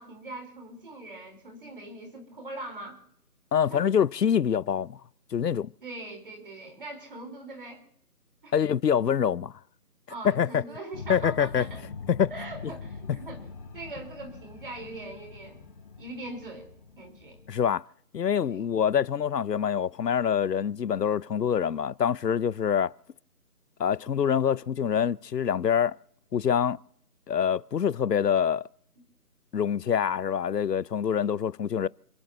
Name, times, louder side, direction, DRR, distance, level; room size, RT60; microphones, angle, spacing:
voice 1, 0.0-3.0 3.7-3.9 5.8-7.8 8.4-8.5 10.1-11.8 12.3-13.4 13.7-15.6 16.0-16.7 17.0-17.4 18.5-18.7, right 2 dB, 35° right, 4.4 m, -41 dB
voice 2, 3.5-5.0 5.3-5.7 8.5-9.5 10.2-10.6 11.1-11.6 12.1-12.3 17.5-17.8 18.1-22.9 23.8-26.0 26.3-26.8 27.3-28.6 29.5-31.9, left 8 dB, 90° left, 0.7 m, -25 dB
sound 1, 10.9-17.7, left 4 dB, 30° left, 7.4 m, -43 dB
29.5 x 14.5 x 3.0 m
figure-of-eight pair, 170°, 47 cm